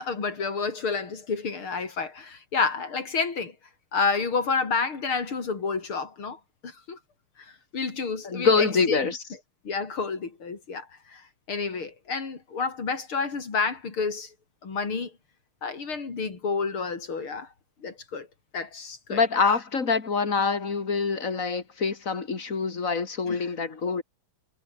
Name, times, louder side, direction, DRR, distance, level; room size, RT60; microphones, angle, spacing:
voice 1, 0.0-3.5 3.9-7.0 7.7-9.1 9.6-14.3 14.6-15.1 15.6-17.5 17.8-18.3 18.5-19.2 23.3-23.5, left 4 dB, 75° left, 4.7 m, -30 dB
voice 2, 8.2-9.2 19.1-24.0, left 4 dB, 40° left, 2.8 m, -25 dB
omnidirectional pair, 2.4 m